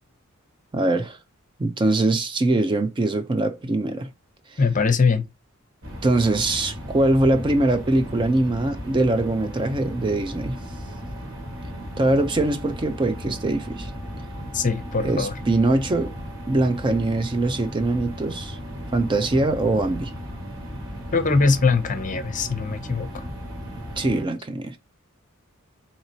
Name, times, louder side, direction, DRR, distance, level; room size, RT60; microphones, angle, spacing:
voice 1, 0.7-1.2 1.6-4.1 4.5-4.6 6.0-10.6 12.0-13.9 15.0-16.1 16.5-18.6 18.9-20.1 24.0-24.8, right 2 dB, 20° right, 0.3 m, -22 dB
voice 2, 4.6-5.2 14.5-15.4 21.1-23.2, left 4 dB, 35° left, 0.6 m, -22 dB
sound 1, 5.8-24.2, equal, 65° right, 1.6 m, -36 dB
4.3 x 2.8 x 2.7 m
head